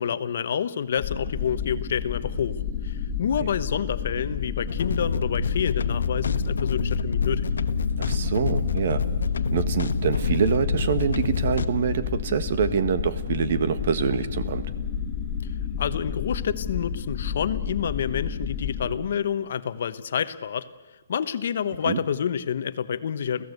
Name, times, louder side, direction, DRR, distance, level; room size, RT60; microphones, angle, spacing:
voice 1, 0.0-7.4 15.4-15.5 15.8-20.7 21.1-23.4, left 8 dB, 50° left, 13 dB, 1.1 m, -28 dB
sound 1, 1.0-19.0, left 7 dB, 25° left, 1.7 m, -31 dB
sound 2, 4.7-11.6, left 4 dB, 90° left, 1.2 m, -27 dB
voice 2, 8.0-9.0 9.5-14.6 21.8-22.0, right 7 dB, 45° right, 12 dB, 1.4 m, -25 dB
29.0 x 15.5 x 8.2 m, 1.2 s
hypercardioid pair, 170°, 0 cm